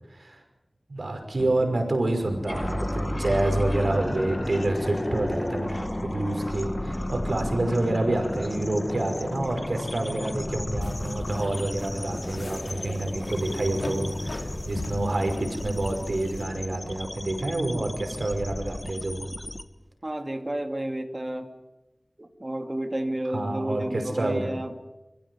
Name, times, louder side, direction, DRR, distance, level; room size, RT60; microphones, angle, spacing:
voice 1, 0.1-0.4 0.9-19.3 23.3-24.5, right 2 dB, 70° right, 4 dB, 5.5 m, -28 dB
Thunder, 1.0-11.7 12.1-12.2 12.5-14.0 14.3-14.5 14.8-15.6 16.0-16.1 16.5-16.6 18.9-19.5, equal, 5° right, 4.2 m, -42 dB
sound 1, 2.5-19.6, left 1 dB, 30° left, 1.6 m, -33 dB
sound 2, 10.8-16.4, left 2 dB, 75° left, 2.9 m, -39 dB
voice 2, 20.0-21.5 22.2-24.7, right 1 dB, 35° right, 5 dB, 2.5 m, -31 dB
29.0 x 15.5 x 9.6 m, 1.0 s
wide cardioid pair, 50°, 0 cm